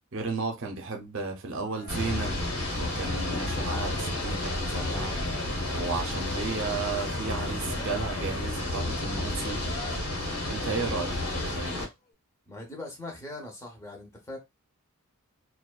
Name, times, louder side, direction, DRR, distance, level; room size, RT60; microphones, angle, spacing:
voice 1, 0.1-2.3 2.7-5.2 5.7-9.7 10.5-11.8, right 4 dB, 60° right, 0.6 m, -34 dB
Cheering, 1.6-11.7, left 2 dB, 40° left, 0.8 m, -47 dB
sound 1, 1.9-11.8, left 1 dB, 75° left, 1.1 m, -31 dB
voice 2, 12.5-14.4, left 2 dB, 15° left, 0.6 m, -41 dB
2.6 x 2.2 x 2.2 m
head